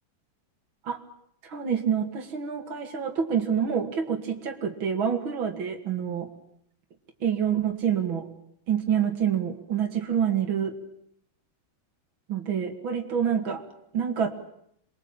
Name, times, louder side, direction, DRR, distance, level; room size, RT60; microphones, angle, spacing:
voice 1, 1.4-6.3 7.2-8.3 8.7-10.7 12.3-13.6 13.9-14.3, right 8 dB, 70° right, 4 dB, 3.0 m, -27 dB
27.5 x 22.0 x 8.9 m, 0.72 s
omnidirectional pair, 2.2 m